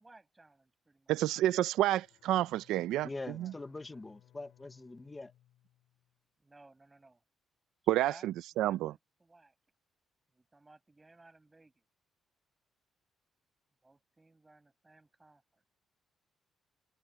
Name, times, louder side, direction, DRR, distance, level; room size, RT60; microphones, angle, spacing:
voice 1, 0.0-1.1 3.4-3.5 6.4-7.2 8.0-8.3 8.5-9.5 10.3-11.8 13.8-15.6, right 2 dB, 20° right, 6.4 m, -59 dB
voice 2, 1.1-3.1 3.4-3.5 7.9-8.9, right 14 dB, 90° right, 0.6 m, -29 dB
Bowed string instrument, 1.9-6.2, left 13 dB, 85° left, 5.3 m, -65 dB
voice 3, 3.0-5.3, left 2 dB, 20° left, 1.1 m, -43 dB
cardioid pair, 90°, 0 cm